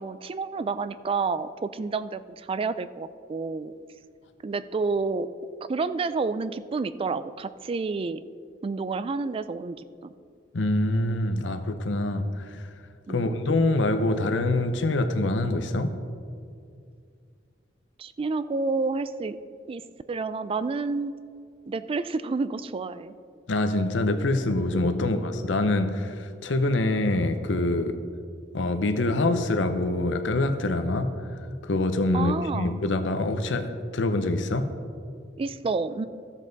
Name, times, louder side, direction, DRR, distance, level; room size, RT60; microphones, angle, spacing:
voice 1, 0.0-3.7 4.4-5.3 5.7-8.2 8.6-9.8 10.0-10.1 13.1-13.5 18.0-19.4 19.7-19.8 20.1-21.1 21.7-23.1 24.9-25.2 32.1-32.8 35.4-36.1, right 4 dB, 30° right, 14 dB, 0.3 m, -29 dB
voice 2, 10.5-12.7 13.1-15.9 23.5-28.0 28.5-31.1 31.6-34.7, left 2 dB, 75° left, 7 dB, 0.7 m, -25 dB
13.5 x 7.3 x 4.0 m, 2.3 s
head